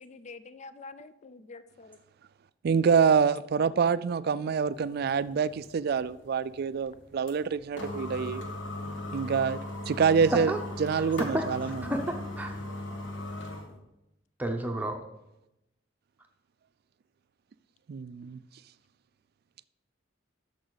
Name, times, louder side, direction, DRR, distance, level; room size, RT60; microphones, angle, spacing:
voice 1, 0.0-2.0 4.2-4.5 6.7-6.8, left 3 dB, 35° left, 14 dB, 0.4 m, -48 dB
voice 2, 2.6-8.4 9.1-9.6 9.9-10.5 10.8-11.8 17.9-18.4, right 6 dB, 55° right, 16 dB, 0.3 m, -26 dB
sound 1, 4.7-13.8, left 1 dB, 70° left, 1.6 m, -39 dB
voice 3, 11.0-12.5 14.4-15.0, right 1 dB, 10° right, 3 dB, 0.7 m, -32 dB
11.5 x 6.9 x 4.0 m, 0.89 s
head